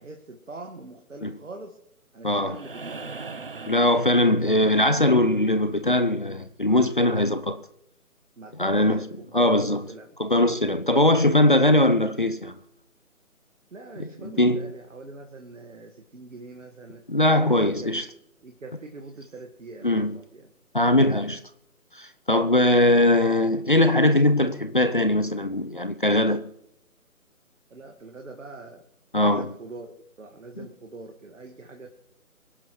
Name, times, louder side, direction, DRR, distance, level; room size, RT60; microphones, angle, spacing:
voice 1, 0.0-1.8 2.1-3.2 8.4-10.1 13.7-17.0 17.4-17.9 18.4-20.5 27.7-28.8 29.2-31.9, right 3 dB, 60° right, 1.8 m, -43 dB
voice 2, 2.2-2.6 3.7-7.6 8.5-9.0 9.3-9.8 10.2-12.6 14.0-14.7 17.1-18.1 19.8-20.2 20.7-21.4 21.9-26.5 29.1-29.5 30.6-30.7, left 1 dB, 35° left, 0.6 m, -21 dB
sound 1, 2.5-4.8 6.7-6.8, right 4 dB, 40° right, 0.9 m, -39 dB
23.5 x 11.5 x 3.1 m
figure-of-eight pair, 150°, 44 cm